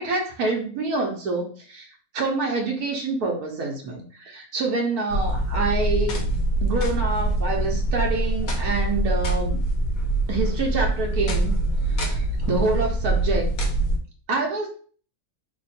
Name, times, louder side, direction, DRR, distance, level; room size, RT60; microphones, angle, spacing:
voice 1, 0.0-6.3 6.6-9.6 10.3-11.6 11.9-13.5 14.3-14.7, right 3 dB, 85° right, 0 dB, 1.4 m, -27 dB
sound 1, 5.1-14.0, right 2 dB, 75° left, 1.2 m, -24 dB
3.6 x 2.2 x 4.1 m, 0.43 s
omnidirectional pair, 1.6 m